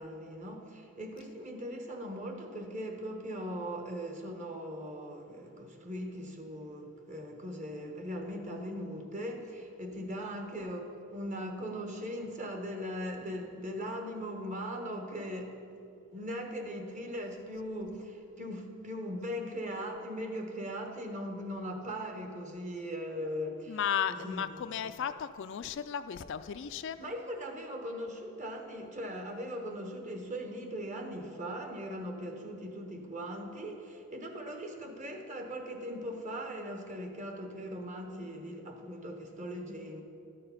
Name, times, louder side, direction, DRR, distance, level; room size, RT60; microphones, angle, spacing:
voice 1, 0.0-15.6 16.1-23.8 24.2-24.4 27.0-40.0, equal, 35° right, 3 dB, 1.1 m, -39 dB
voice 2, 23.7-27.0, left 8 dB, 60° left, 11 dB, 0.3 m, -35 dB
12.5 x 6.8 x 5.6 m, 2.6 s
head